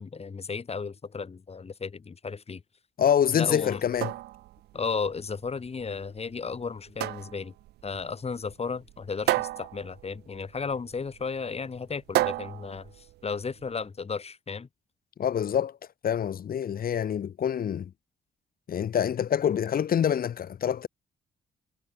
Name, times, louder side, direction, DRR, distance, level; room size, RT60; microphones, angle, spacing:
voice 1, 0.0-2.6 3.3-3.8 4.7-7.5 7.8-14.7, left 5 dB, 40° left, 5.0 m, -34 dB
voice 2, 3.0-4.1 15.2-15.8 16.0-17.9 18.7-20.9, left 9 dB, 65° left, 4.9 m, -26 dB
sound 1, 3.7-13.7, right 16 dB, 90° right, 3.3 m, -34 dB
cardioid pair, 70°, 16 cm